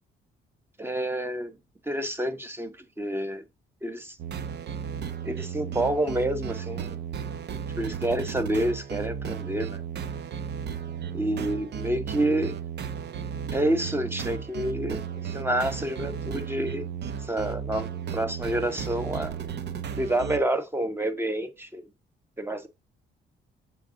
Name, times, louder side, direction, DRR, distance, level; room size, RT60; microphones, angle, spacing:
voice 1, 0.8-1.6 1.9-3.4 3.8-4.1 5.2-7.0 7.8-9.8 11.1-12.5 13.5-15.0 15.3-16.9 17.3-19.4 19.9-21.9 22.4-22.7, right 1 dB, 10° right, 1.1 m, -28 dB
sound 1, 4.2-20.4, right 7 dB, 60° right, 0.7 m, -34 dB
7.1 x 3.8 x 3.9 m
cardioid pair, 90°, 20 cm